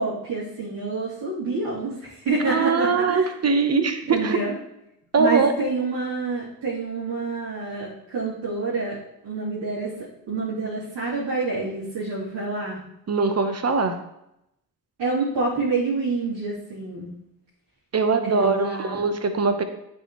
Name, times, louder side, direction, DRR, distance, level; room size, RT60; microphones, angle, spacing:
voice 1, 0.0-3.3 4.1-4.5 5.2-9.0 9.2-9.9 10.3-12.8 15.0-17.1 18.2-19.0, right 3 dB, 80° right, -9 dB, 2.7 m, -27 dB
voice 2, 2.5-4.4 5.1-5.5 13.1-14.0 17.9-19.6, right 4 dB, 35° right, 7 dB, 1.0 m, -22 dB
8.8 x 4.9 x 3.0 m, 0.83 s
supercardioid pair, 60°, 42 cm